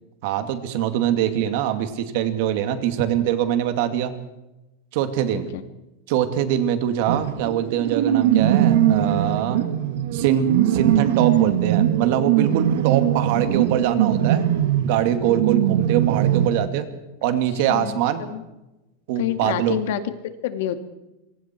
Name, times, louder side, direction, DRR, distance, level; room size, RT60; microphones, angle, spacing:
voice 1, 0.2-4.1 4.9-5.5 6.1-9.6 10.1-14.4 14.8-16.9 17.2-18.2 19.1-19.8, right 10 dB, 50° right, 9 dB, 2.4 m, -23 dB
sound 1, 7.1-16.5, right 11 dB, 70° right, 2.2 m, -20 dB
voice 2, 17.7-18.4 19.2-20.8, left 11 dB, 60° left, 9 dB, 2.2 m, -28 dB
26.5 x 23.5 x 4.6 m, 0.98 s
supercardioid pair, 175°, 0 cm